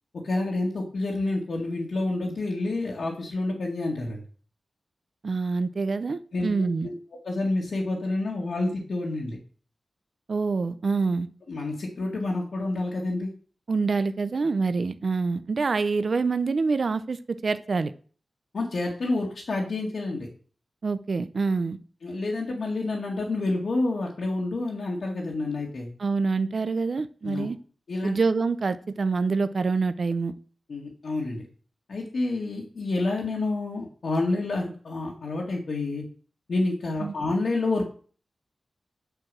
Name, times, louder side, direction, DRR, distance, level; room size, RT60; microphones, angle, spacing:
voice 1, 0.2-4.2 6.3-6.9 7.2-9.4 11.5-13.3 18.5-20.3 22.0-25.9 27.2-27.5 27.9-28.2 30.7-31.4 31.9-36.0 36.5-37.9, left 2 dB, 75° left, -2 dB, 2.0 m, -28 dB
voice 2, 5.2-6.9 10.3-11.3 13.7-17.9 20.8-21.8 26.0-27.6 28.0-30.3 37.0-37.1, right 4 dB, 55° right, 12 dB, 0.6 m, -26 dB
9.0 x 4.8 x 7.5 m, 0.42 s
wide cardioid pair, 125°, 0 cm